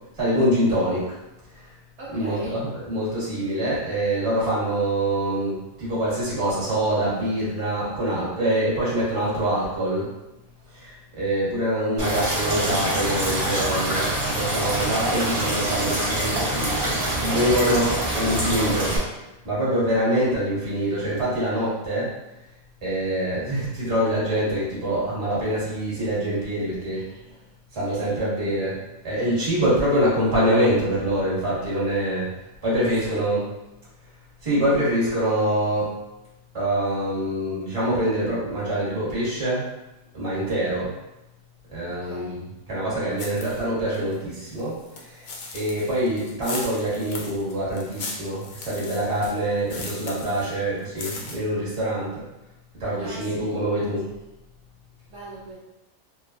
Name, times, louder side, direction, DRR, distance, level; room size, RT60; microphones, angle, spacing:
voice 1, 0.2-1.2 2.1-10.1 10.7-16.9 17.2-18.9 19.4-22.1 22.8-27.1 27.7-28.8 29.0-32.3 32.6-33.4 34.4-35.9 36.5-39.6 40.1-40.9 41.7-44.8 45.2-45.3 45.5-52.1 52.8-54.1, right 1 dB, 25° right, -9 dB, 1.2 m, -25 dB
voice 2, 2.0-2.6 26.9-27.3 27.9-28.1 32.6-33.5 41.9-42.4 53.0-53.5 55.1-55.5, right 2 dB, 70° right, -8 dB, 1.0 m, -41 dB
sound 1, 12.0-19.0, right 1 dB, 45° right, 0.9 m, -25 dB
sound 2, 43.2-43.6 43.9-50.5 50.8-51.3, left 3 dB, 85° left, 1.0 m, -37 dB
3.2 x 2.2 x 2.4 m, 0.96 s
omnidirectional pair, 1.4 m